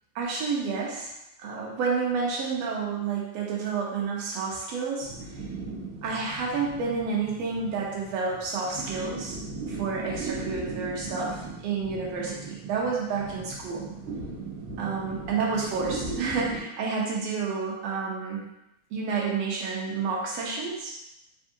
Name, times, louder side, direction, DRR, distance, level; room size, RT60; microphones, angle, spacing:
voice 1, 0.2-1.1 1.4-5.4 6.0-9.4 9.7-13.9 14.8-18.5 18.9-21.0, right 5 dB, 70° right, -3 dB, 1.7 m, -30 dB
sound 1, 5.0-16.6, right 3 dB, 85° right, 2.3 m, -38 dB
4.8 x 3.5 x 2.7 m, 0.85 s
omnidirectional pair, 3.6 m